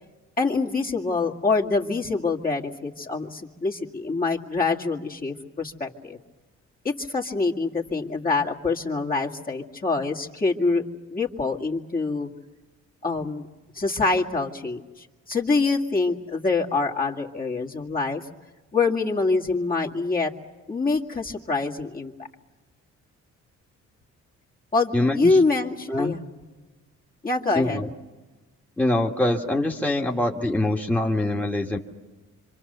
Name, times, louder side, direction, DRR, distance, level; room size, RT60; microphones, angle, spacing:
voice 1, 0.4-6.2 6.8-10.8 11.1-12.3 13.0-13.5 13.7-18.3 18.7-20.3 20.7-22.1 24.7-26.2 27.2-27.8, left 3 dB, 30° left, -1 dB, 2.2 m, -25 dB
voice 2, 24.9-25.4 25.9-26.1 27.6-27.9 28.8-31.8, left 1 dB, 5° left, 0 dB, 1.8 m, -24 dB
26.5 x 26.0 x 6.8 m, 1.2 s
cardioid pair, 90°, 30 cm